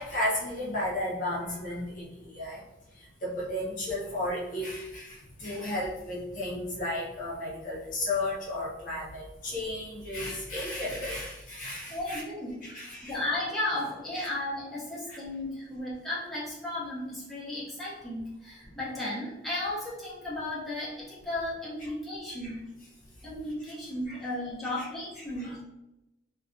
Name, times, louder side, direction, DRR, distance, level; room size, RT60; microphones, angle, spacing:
voice 1, 0.0-2.6 3.0-12.2 12.6-13.2 14.1-14.3 15.1-15.2 21.8-21.9 22.4-22.5 23.7-23.8 24.1-24.2 24.8-24.9 25.2-25.3, left 1 dB, 45° left, -5 dB, 0.6 m, -34 dB
voice 2, 11.9-12.6 13.0-22.7 23.2-25.6, left 1 dB, ahead, -9 dB, 0.7 m, -34 dB
2.3 x 2.1 x 2.5 m, 0.94 s
head